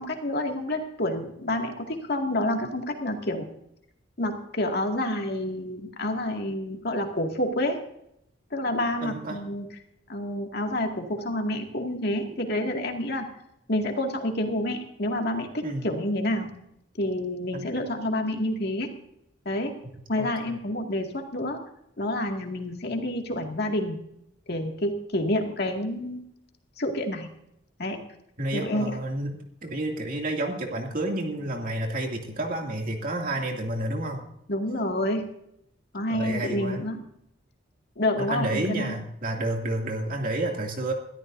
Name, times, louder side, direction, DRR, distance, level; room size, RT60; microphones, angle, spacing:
voice 1, 0.0-3.5 4.2-7.8 8.5-9.7 10.1-13.3 13.7-16.5 17.0-18.9 19.5-19.7 20.1-21.6 22.0-24.0 24.5-26.3 26.8-27.3 27.8-28.0 28.5-28.9 34.5-35.3 35.9-37.0 38.0-38.9, left 1 dB, 55° left, 3 dB, 2.2 m, -28 dB
voice 2, 9.0-9.4 15.6-15.9 17.5-17.6 20.2-20.6 28.4-34.3 36.1-36.8 38.2-40.9, right 1 dB, 45° right, 2 dB, 2.5 m, -30 dB
21.0 x 13.5 x 2.7 m, 0.76 s
head